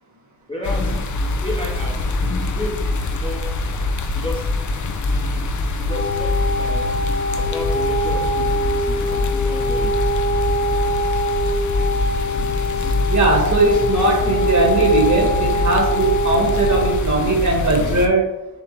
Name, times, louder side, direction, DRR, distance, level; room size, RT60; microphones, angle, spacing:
voice 1, 0.5-3.6 4.1-4.5 5.8-7.0 7.3-10.1, left 1 dB, 15° left, -2 dB, 0.8 m, -33 dB
sound 1, 0.6-18.1, left 2 dB, 50° left, 0.6 m, -24 dB
sound 2, 5.9-16.9, equal, 35° left, 1.5 m, -23 dB
voice 2, 12.8-18.2, right 2 dB, 50° right, -2 dB, 1.5 m, -19 dB
6.7 x 2.4 x 3.0 m, 0.97 s
cardioid pair, 65°, 37 cm